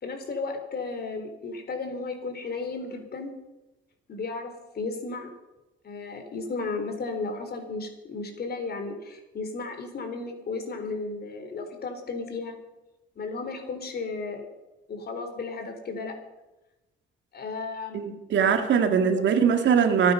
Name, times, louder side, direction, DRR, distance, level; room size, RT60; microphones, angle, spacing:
voice 1, 0.0-3.3 4.1-5.3 5.8-12.6 13.2-14.4 14.9-16.2 17.3-18.0 18.8-19.2, left 3 dB, 50° left, 6 dB, 3.9 m, -34 dB
voice 2, 17.9-20.1, right 7 dB, 65° right, 6 dB, 2.0 m, -21 dB
25.5 x 9.5 x 5.6 m, 1.0 s
cardioid pair, 90°, 20 cm